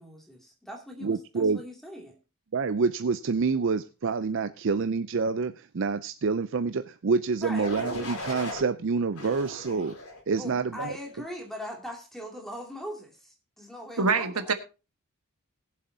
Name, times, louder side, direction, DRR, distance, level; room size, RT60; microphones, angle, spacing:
voice 1, 0.0-2.2 7.4-7.7 10.4-14.5, equal, ahead, 2.5 m, -41 dB
voice 2, 1.0-1.6 2.5-9.9 10.3-10.9, right 4 dB, 55° right, 0.5 m, -27 dB
sound 1, 7.6-8.6 9.2-10.2 10.8-11.2, left 2 dB, 85° left, 3.6 m, -37 dB
voice 3, 14.0-14.5, right 4 dB, 85° right, 1.4 m, -24 dB
20.5 x 7.6 x 2.7 m
head